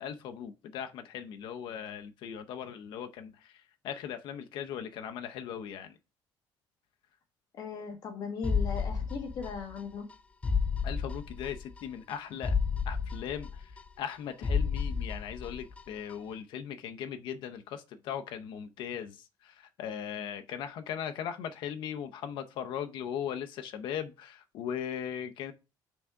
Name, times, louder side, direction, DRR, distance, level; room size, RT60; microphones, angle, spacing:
voice 1, 0.0-6.0 10.8-12.5 12.9-13.7 14.0-25.5, left 8 dB, 65° left, 0.7 m, -39 dB
voice 2, 7.5-10.1, left 5 dB, 50° left, 1.2 m, -38 dB
sound 1, 8.4-9.8 10.1-10.2 10.4-11.8 12.1-12.2 12.4-14.1 14.4-15.8 16.1-16.2, left 5 dB, 15° left, 0.4 m, -31 dB
6.1 x 3.6 x 4.6 m
cardioid pair, 160°, 9 cm